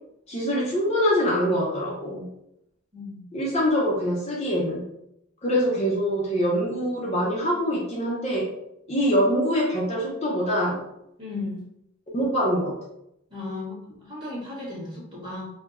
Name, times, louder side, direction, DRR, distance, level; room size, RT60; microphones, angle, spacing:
voice 1, 0.3-2.3 3.3-4.9 5.4-8.5 8.9-10.8 12.1-12.8, equal, 30° left, -4 dB, 0.6 m, -24 dB
voice 2, 2.9-3.2 11.2-11.6 13.3-15.5, left 2 dB, 25° right, -6 dB, 1.5 m, -35 dB
4.6 x 2.2 x 2.5 m, 0.80 s
head